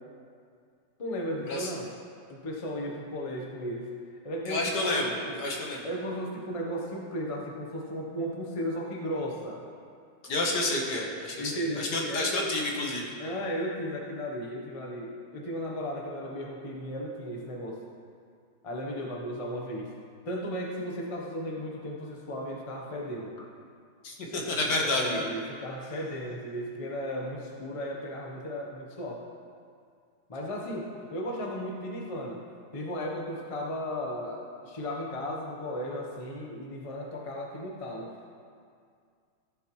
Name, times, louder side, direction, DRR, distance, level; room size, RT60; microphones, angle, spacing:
voice 1, 1.0-1.9 2.3-3.9 4.2-4.9 5.2-5.4 5.8-9.6 11.4-12.3 13.2-17.8 18.6-19.9 20.3-23.3 24.8-29.2 30.3-32.4 32.7-38.3, equal, 35° left, -1 dB, 0.5 m, -35 dB
voice 2, 4.5-5.9 10.2-13.1 24.0-25.2, left 2 dB, 55° left, -1 dB, 1.7 m, -30 dB
14.5 x 7.3 x 3.1 m, 2.2 s
omnidirectional pair, 2.2 m